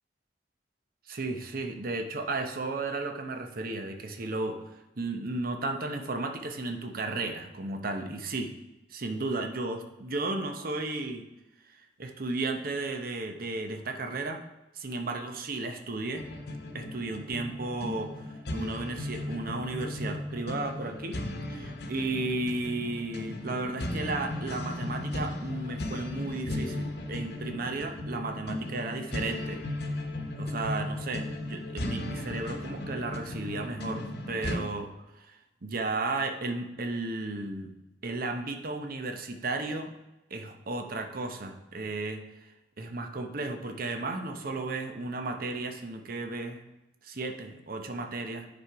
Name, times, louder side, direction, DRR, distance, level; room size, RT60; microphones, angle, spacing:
voice 1, 1.1-4.6 5.0-8.5 8.9-11.3 11.7-14.4 14.7-16.2 16.7-18.2 18.5-21.2 21.5-29.6 30.4-34.9 35.2-35.4 35.6-37.7 38.0-39.9 40.3-42.2 42.8-46.6 47.0-48.5, right 2 dB, 55° right, 5 dB, 0.8 m, -34 dB
sound 1, 16.2-34.6, left 1 dB, 65° left, 0.9 m, -36 dB
9.7 x 4.3 x 4.7 m, 1.0 s
head